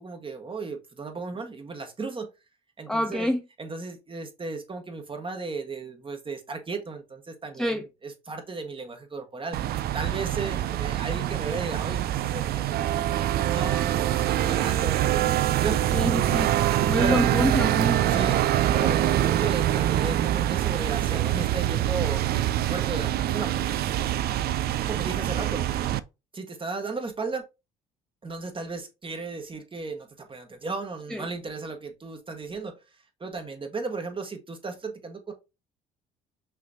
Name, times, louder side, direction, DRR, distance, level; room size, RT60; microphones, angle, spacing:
voice 1, 0.0-2.3 2.8-3.3 3.6-9.6 9.9-15.8 17.0-17.3 18.1-18.4 18.7-23.8 24.8-25.7 26.3-27.4 28.2-32.8 33.2-35.3, right 3 dB, 25° right, 1.4 m, -35 dB
voice 2, 2.9-3.4 7.5-7.8 15.9-16.5 16.9-18.0 31.1-31.3, equal, 5° left, 0.5 m, -26 dB
sound 1, 9.5-26.0, right 12 dB, 55° right, 0.4 m, -25 dB
5.7 x 3.1 x 2.7 m
hypercardioid pair, 65°, 19 cm